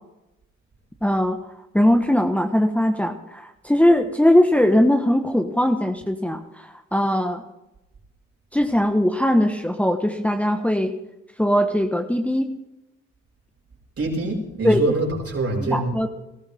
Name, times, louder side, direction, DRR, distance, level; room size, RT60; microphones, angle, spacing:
voice 1, 1.0-1.4 1.7-7.4 8.5-10.9 11.4-12.5 14.6-14.8 15.6-16.1, left 1 dB, 5° left, 4 dB, 1.4 m, -20 dB
voice 2, 14.0-16.0, right 2 dB, 50° right, -1 dB, 5.9 m, -24 dB
20.5 x 13.5 x 3.7 m, 0.94 s
cardioid pair, 70°, 30 cm